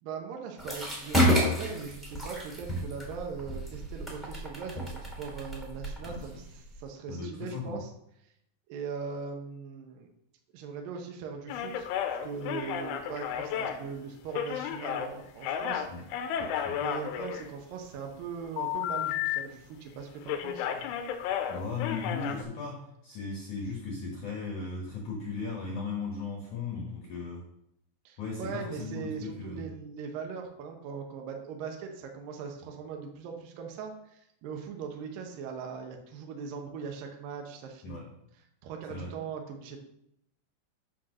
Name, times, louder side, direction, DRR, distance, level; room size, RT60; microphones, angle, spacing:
voice 1, 0.0-7.9 8.7-10.1 10.5-15.9 16.7-20.9 28.1-38.0 38.6-39.9, right 6 dB, 75° right, 2 dB, 2.0 m, -40 dB
sound 1, 0.6-6.8, equal, ahead, 1.3 m, -30 dB
voice 2, 7.1-7.8 15.8-16.0 16.5-16.8 21.5-27.4 28.2-29.7 37.8-38.1 38.9-39.1, left 4 dB, 70° left, 0 dB, 1.9 m, -37 dB
sound 2, 11.5-15.1 15.4-17.9 18.6-19.4 19.7-19.9 20.2-22.4, left 9 dB, 90° left, 3.2 m, -33 dB
10.0 x 4.6 x 6.3 m, 0.76 s
omnidirectional pair, 5.5 m